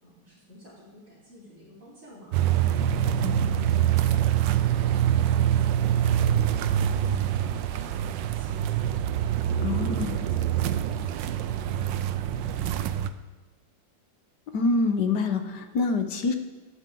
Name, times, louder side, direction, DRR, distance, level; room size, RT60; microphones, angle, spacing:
voice 1, 0.0-2.7 8.3-9.0 9.6-10.7 11.0-12.3, equal, 40° right, -12 dB, 4.8 m, -50 dB
sound 1, 2.3-13.1, right 10 dB, 75° right, 1.3 m, -25 dB
voice 2, 9.6-10.2 14.5-16.3, left 3 dB, 60° left, 7 dB, 1.6 m, -26 dB
17.0 x 13.5 x 3.9 m, 1.3 s
omnidirectional pair, 2.1 m